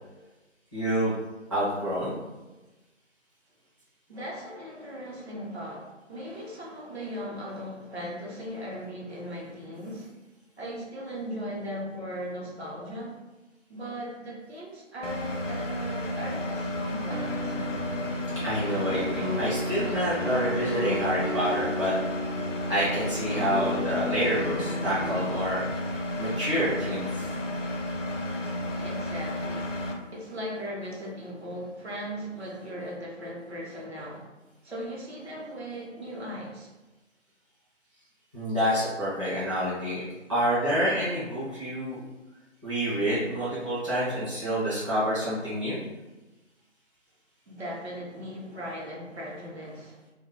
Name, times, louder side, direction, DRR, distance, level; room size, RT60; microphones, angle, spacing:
voice 1, 0.7-1.2 1.5-2.1 18.4-21.9 22.7-25.6 26.2-27.2 38.3-40.0 40.3-42.0 42.6-45.8, equal, 25° right, -12 dB, 0.5 m, -28 dB
voice 2, 4.1-10.1 10.6-13.2 13.7-17.6 28.8-29.8 30.1-34.3 34.6-36.7 47.5-50.0, equal, 60° right, -3 dB, 0.8 m, -38 dB
Engine, 15.0-29.9, left 1 dB, 80° left, 0.7 m, -32 dB
sound 1, 17.1-25.4, left 1 dB, 40° left, 0.4 m, -35 dB
2.2 x 2.1 x 3.3 m, 1.1 s
figure-of-eight pair, 155°, 37 cm